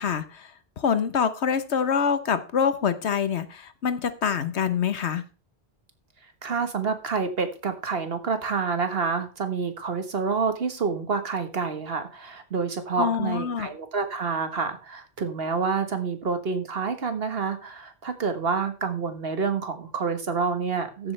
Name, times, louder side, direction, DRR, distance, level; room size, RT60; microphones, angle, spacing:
voice 1, 0.0-5.2 13.0-13.7, left 7 dB, 80° left, 1.3 m, -25 dB
voice 2, 6.4-21.1, right 5 dB, 60° right, 1.6 m, -28 dB
14.0 x 8.3 x 3.3 m
omnidirectional pair, 1.1 m